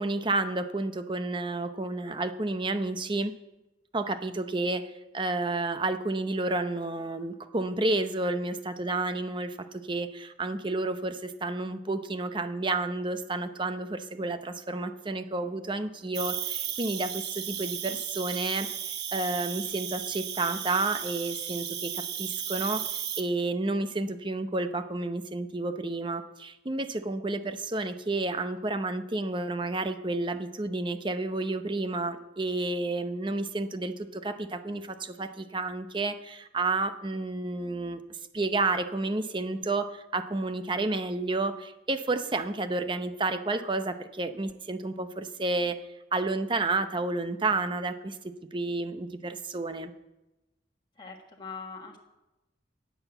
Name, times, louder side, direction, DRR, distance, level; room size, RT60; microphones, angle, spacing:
voice 1, 0.0-3.3 3.9-38.0 38.3-45.8 46.1-49.9, right 2 dB, 25° right, 9 dB, 0.7 m, -31 dB
Cricket, 16.1-23.2, right 9 dB, 60° right, 1.2 m, -35 dB
voice 2, 51.0-52.0, left 5 dB, 25° left, 0 dB, 1.4 m, -42 dB
10.0 x 9.3 x 7.9 m, 1.0 s
head